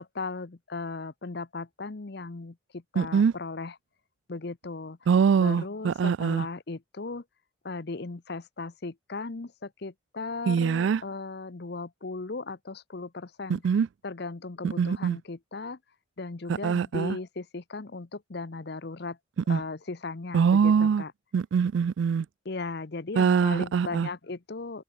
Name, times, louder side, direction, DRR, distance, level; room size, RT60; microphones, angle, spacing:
voice 1, 0.0-3.7 4.3-5.0 5.4-7.2 7.6-13.6 14.0-15.8 16.2-19.2 19.5-21.1 22.5-24.8, left 3 dB, 55° left, 0.8 m, -37 dB
voice 2, 3.0-3.3 5.1-6.5 10.5-11.0 13.5-13.9 14.6-15.2 16.5-17.2 19.5-19.6 20.3-21.0 21.3-22.3 23.2-24.1, right 6 dB, 65° right, 0.3 m, -23 dB
open air
head